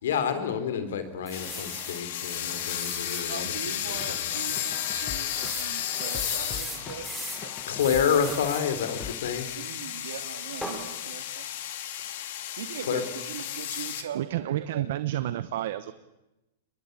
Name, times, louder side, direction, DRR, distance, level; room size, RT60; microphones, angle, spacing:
voice 1, 0.0-4.3 7.7-9.5 12.9-13.0, left 7 dB, 65° left, 11 dB, 4.1 m, -29 dB
sound 1, 1.3-14.0, left 11 dB, 45° left, 2.4 m, -34 dB
sound 2, 1.3-3.3 3.8-3.9 4.2-4.3 5.3-7.4 7.8-8.7 10.6-10.8, right 1 dB, ahead, 3.2 m, -39 dB
voice 2, 3.2-7.5 9.5-11.5 12.6-14.9, right 8 dB, 80° right, 8 dB, 3.4 m, -40 dB
sound 3, 3.9-9.1, left 8 dB, 15° left, 1.2 m, -43 dB
voice 3, 14.1-15.9, right 13 dB, 50° right, 13 dB, 1.0 m, -30 dB
29.0 x 22.0 x 8.3 m, 0.99 s
supercardioid pair, 175°, 0 cm